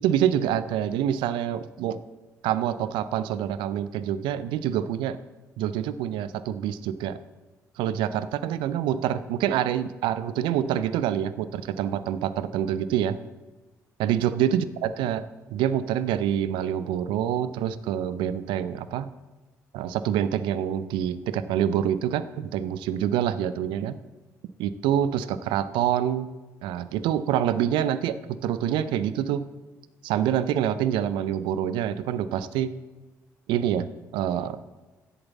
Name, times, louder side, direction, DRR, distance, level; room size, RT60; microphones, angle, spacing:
voice 1, 0.0-2.0 2.4-5.2 5.6-7.2 7.8-13.2 14.0-19.1 19.7-24.0 24.6-26.3 26.6-29.5 30.0-32.7 33.5-33.9 34.1-34.6, right 10 dB, 70° right, 14 dB, 0.5 m, -26 dB
8.0 x 7.8 x 7.2 m, 1.2 s
hypercardioid pair, 50°, 9 cm